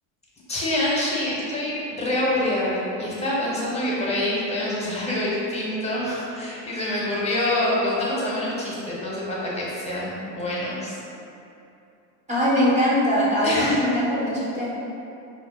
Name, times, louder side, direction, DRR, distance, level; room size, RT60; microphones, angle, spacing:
voice 1, 0.5-11.0 13.4-13.8, left 1 dB, 20° left, -6 dB, 0.7 m, -26 dB
voice 2, 12.3-14.8, equal, 20° right, -8 dB, 0.6 m, -22 dB
5.3 x 2.2 x 2.3 m, 2.8 s
supercardioid pair, 115°, 36 cm